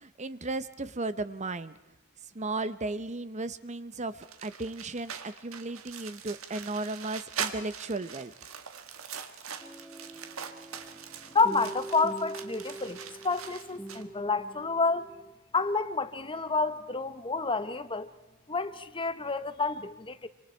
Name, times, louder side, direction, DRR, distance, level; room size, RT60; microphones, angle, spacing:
voice 1, 0.0-1.7 2.3-8.3, right 2 dB, 35° right, 0.8 m, -35 dB
sound 1, 4.2-14.0, right 7 dB, 70° right, 1.7 m, -42 dB
sound 2, 9.6-15.3, right 2 dB, ahead, 2.1 m, -43 dB
voice 2, 11.3-15.1 15.5-18.1 18.5-20.3, left 4 dB, 25° left, 1.0 m, -29 dB
26.5 x 26.5 x 4.5 m
head